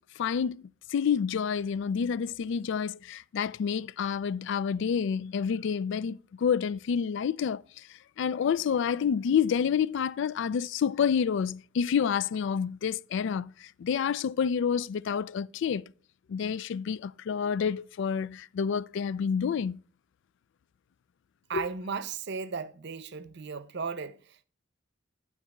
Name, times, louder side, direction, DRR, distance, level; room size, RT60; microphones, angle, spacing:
voice 1, 0.2-0.6 0.9-7.9 8.2-15.8 16.3-19.8 21.5-21.6, left 7 dB, 65° left, 0.3 m, -28 dB
voice 2, 21.5-24.4, right 5 dB, 55° right, 0.6 m, -36 dB
11.5 x 4.0 x 5.8 m
head